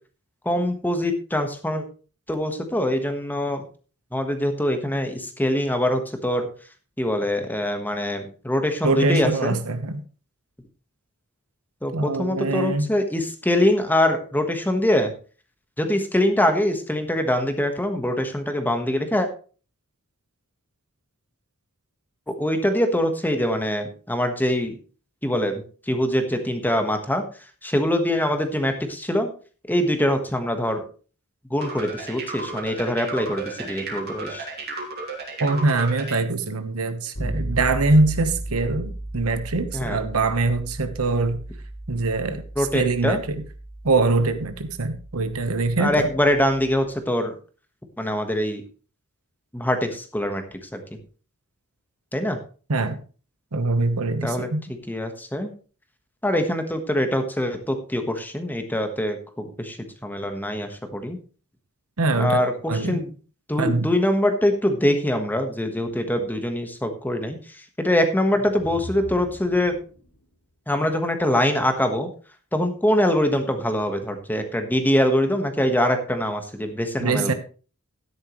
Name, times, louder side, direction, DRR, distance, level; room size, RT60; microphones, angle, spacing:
voice 1, 0.4-1.8 2.3-3.6 4.1-6.5 7.0-9.6 11.8-15.1 15.8-19.3 22.3-24.8 25.2-27.2 27.6-29.3 29.7-30.8 31.5-34.4 39.7-40.1 42.6-43.2 45.8-47.3 48.0-48.6 49.5-50.4 50.7-50.8 52.1-52.4 54.2-54.5 54.9-55.5 56.2-59.8 60.0-61.2 62.2-63.1 63.5-67.4 67.8-69.8 70.7-72.1 72.5-77.3, left 1 dB, 10° left, 6 dB, 1.3 m, -23 dB
voice 2, 8.8-10.0 11.9-12.9 35.4-41.4 41.9-43.4 43.8-46.1 52.7-53.0 53.5-54.6 62.0-62.4 62.7-63.0 63.6-63.9 77.0-77.3, right 3 dB, 70° right, 10 dB, 1.1 m, -23 dB
sound 1, 31.6-36.2, right 3 dB, 45° right, 2.9 m, -33 dB
Bass guitar, 37.1-46.8, right 1 dB, 90° left, 5.2 m, -35 dB
sound 2, 68.3-70.2, equal, 70° left, 1.9 m, -41 dB
12.5 x 10.0 x 3.1 m, 0.37 s
head